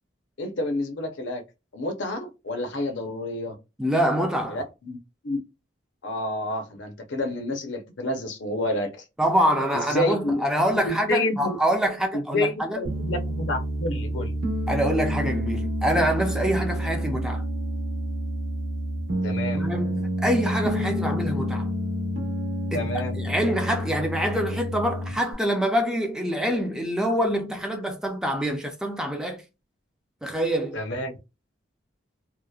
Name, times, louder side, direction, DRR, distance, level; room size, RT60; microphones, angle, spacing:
voice 1, 0.4-1.4 1.7-3.6 4.5-5.0 5.2-5.4 6.0-9.0 9.7-10.4 10.7-11.6 12.1-14.4 19.2-19.7 22.7-23.2 30.7-31.1, left 1 dB, 70° left, 0.6 m, -29 dB
voice 2, 3.8-4.6 9.2-12.8 14.7-17.4 19.5-21.7 22.7-22.9 23.2-29.4 30.2-30.8, equal, 5° right, 0.3 m, -25 dB
Piano, 12.8-25.3, equal, 90° right, 0.9 m, -28 dB
2.8 x 2.0 x 2.3 m
head